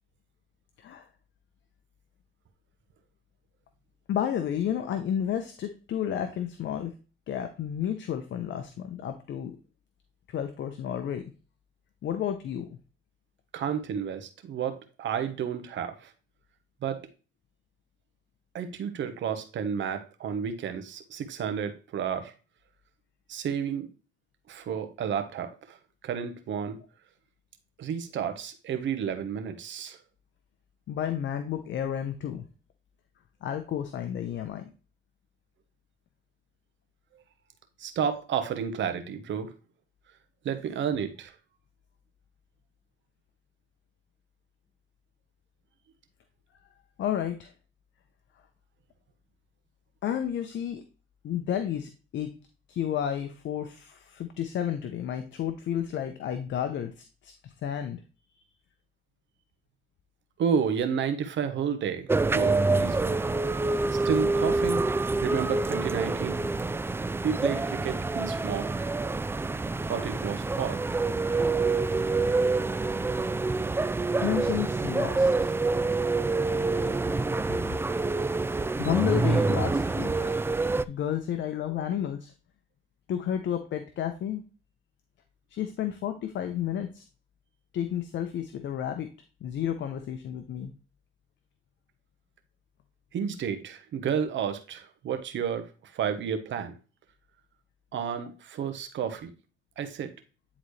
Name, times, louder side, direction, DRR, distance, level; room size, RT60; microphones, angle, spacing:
voice 1, 4.1-6.9 7.3-9.6 10.3-11.2 12.0-12.8 30.9-32.4 33.4-34.7 47.0-47.5 50.0-50.8 51.2-52.4 52.7-58.0 74.2-75.5 78.8-82.3 83.1-84.4 85.5-87.0 87.7-89.1 89.4-90.7, left 10 dB, 70° left, 8 dB, 0.8 m, -31 dB
voice 2, 13.5-16.1 16.8-17.0 18.5-22.3 23.3-23.9 24.5-25.8 26.0-26.8 27.8-30.0 37.8-39.5 40.4-41.3 60.4-63.2 63.9-64.8 65.2-66.4 67.2-68.9 69.8-70.8 93.1-96.7 97.9-99.3 99.8-100.1, right 7 dB, 70° right, 8 dB, 1.2 m, -31 dB
sound 1, 62.1-80.8, right 3 dB, 10° right, 0.3 m, -27 dB
9.9 x 4.1 x 3.3 m, 0.34 s
cardioid pair, 90°, 20 cm